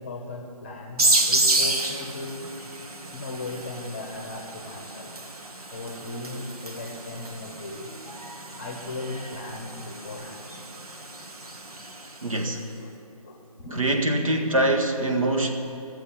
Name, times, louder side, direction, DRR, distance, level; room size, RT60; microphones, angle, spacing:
voice 1, 0.0-2.6 3.1-5.2 5.6-7.9 8.6-10.4 11.9-12.1 12.4-12.9 13.2-13.9, left 2 dB, 20° left, 3 dB, 0.9 m, -37 dB
sound 1, 1.0-12.3, right 2 dB, 90° right, 1.6 m, -30 dB
voice 2, 12.2-12.6 13.8-15.5, right 1 dB, 65° right, 3 dB, 1.6 m, -23 dB
14.0 x 7.7 x 8.9 m, 2.8 s
figure-of-eight pair, 170°, 19 cm